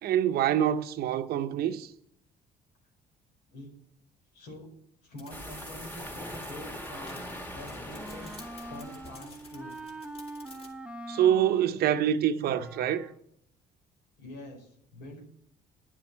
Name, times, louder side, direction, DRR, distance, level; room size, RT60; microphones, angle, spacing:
voice 1, 0.0-1.9 11.1-13.1, right 10 dB, 70° right, 0.7 m, -26 dB
voice 2, 4.3-4.7 5.0-9.7 14.2-15.2, left 1 dB, 90° left, 4.9 m, -46 dB
sound 1, 5.2-10.7, left 2 dB, 35° left, 2.5 m, -52 dB
sound 2, 5.3-9.8, equal, 10° left, 1.8 m, -42 dB
Wind instrument woodwind instrument, 6.7-13.3, right 2 dB, 5° right, 0.7 m, -44 dB
10.5 x 7.3 x 7.3 m
cardioid pair, 110°, 17 cm